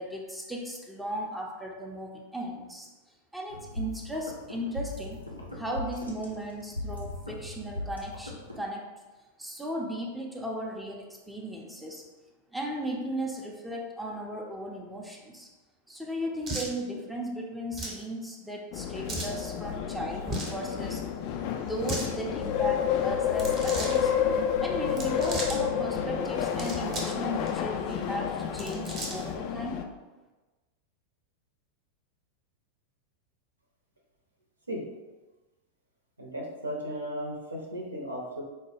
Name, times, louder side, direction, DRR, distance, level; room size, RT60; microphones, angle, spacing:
voice 1, 0.0-2.9 3.3-5.2 5.5-8.8 9.4-12.0 12.5-15.5 15.9-21.0 21.5-24.1 24.6-29.8, right 1 dB, 5° right, -1 dB, 0.5 m, -36 dB
sound 1, 3.5-8.6, left 2 dB, 90° left, 0.6 m, -39 dB
sound 2, 16.4-16.7 17.7-18.0 19.1-19.4 20.2-20.6 21.7-22.1 23.3-24.0 24.9-25.6 26.4-27.2 27.5-27.6 28.4-29.3, right 1 dB, 25° right, 0.9 m, -36 dB
sound 3, 18.7-29.8, left 8 dB, 45° left, 0.3 m, -30 dB
voice 2, 36.2-38.4, equal, 80° right, -1 dB, 0.7 m, -35 dB
4.5 x 2.2 x 3.2 m, 1.2 s
figure-of-eight pair, 90°, 0 cm